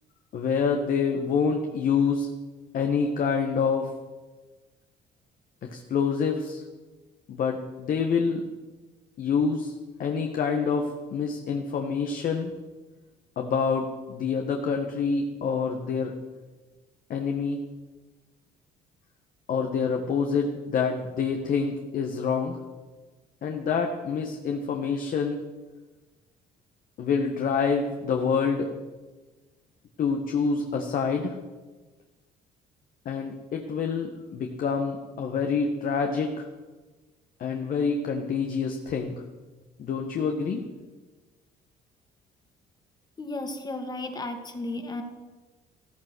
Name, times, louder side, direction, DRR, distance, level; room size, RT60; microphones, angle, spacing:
voice 1, 0.3-2.3 2.7-3.9 5.6-6.6 7.3-8.4 9.2-9.7 10.0-12.5 13.4-16.2 17.1-17.6 19.5-22.6 23.4-25.4 27.0-28.7 30.0-31.4 33.1-36.5 37.4-39.2 39.8-40.6, left 5 dB, 55° left, 3 dB, 1.6 m, -27 dB
voice 2, 43.2-45.0, left 2 dB, 25° left, 5 dB, 2.3 m, -34 dB
15.0 x 14.0 x 6.3 m, 1.3 s
cardioid pair, 110°, 17 cm